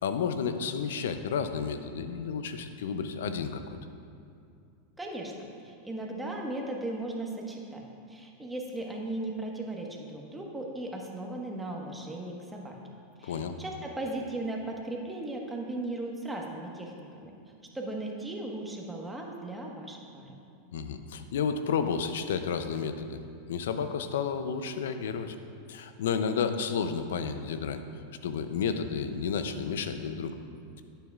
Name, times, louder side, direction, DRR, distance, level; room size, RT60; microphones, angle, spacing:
voice 1, 0.0-3.6 13.2-13.6 20.7-23.2 23.5-25.4 25.7-27.8 28.2-30.4, left 6 dB, 75° left, 9 dB, 0.5 m, -31 dB
voice 2, 5.0-5.3 5.6-12.8 13.2-17.3 17.7-20.4, right 2 dB, 10° right, 0 dB, 1.4 m, -37 dB
11.5 x 9.0 x 2.4 m, 2.5 s
hypercardioid pair, 105°, 0 cm